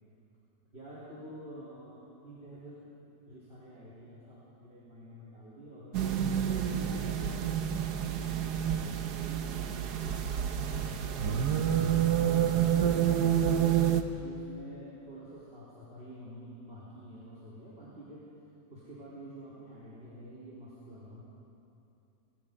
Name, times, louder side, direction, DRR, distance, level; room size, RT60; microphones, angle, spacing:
voice 1, 0.7-2.8 3.3-7.5 8.2-10.2 10.5-13.5 14.1-18.3 18.7-21.2, equal, 40° right, -8 dB, 4.3 m, -48 dB
sound 1, 5.9-14.0, right 9 dB, 80° right, 1.6 m, -28 dB
25.0 x 20.5 x 5.4 m, 2.7 s
omnidirectional pair, 1.7 m